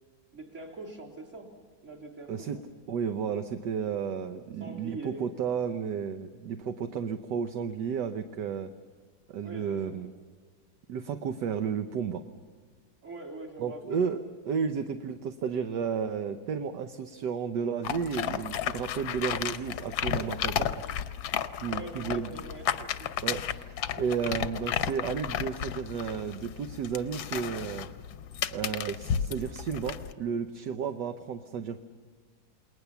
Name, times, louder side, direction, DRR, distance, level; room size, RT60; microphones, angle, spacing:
voice 1, 0.3-1.5 1.8-2.5 4.6-5.2 9.4-10.0 13.0-14.2 21.7-23.2, right 2 dB, 35° right, 0 dB, 3.5 m, -43 dB
voice 2, 2.9-8.7 9.3-10.1 10.9-12.2 13.6-14.2 14.5-20.9 21.6-22.3 23.2-23.4 24.0-27.9 28.5-31.8, right 7 dB, 65° right, 7 dB, 1.4 m, -32 dB
sound 1, 17.8-30.1, left 9 dB, 85° left, 1.6 m, -33 dB
29.0 x 20.5 x 7.0 m, 1.5 s
omnidirectional pair, 2.1 m